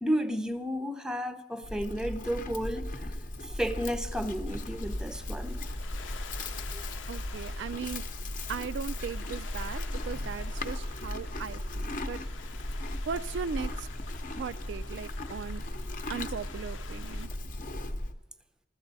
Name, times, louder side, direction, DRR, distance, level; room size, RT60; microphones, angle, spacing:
voice 1, 0.0-2.9 3.4-5.6 6.7-6.8, equal, 5° right, 0.6 m, -32 dB
Livestock farm animals working animals, 1.6-18.1, left 1 dB, 45° left, 0.8 m, -36 dB
sound 1, 4.5-17.3, left 6 dB, 75° left, 0.7 m, -49 dB
voice 2, 7.1-8.0 8.5-12.2 13.1-13.9 14.3-15.6 16.1-17.3, right 6 dB, 65° right, 0.3 m, -38 dB
15.0 x 14.5 x 4.0 m
head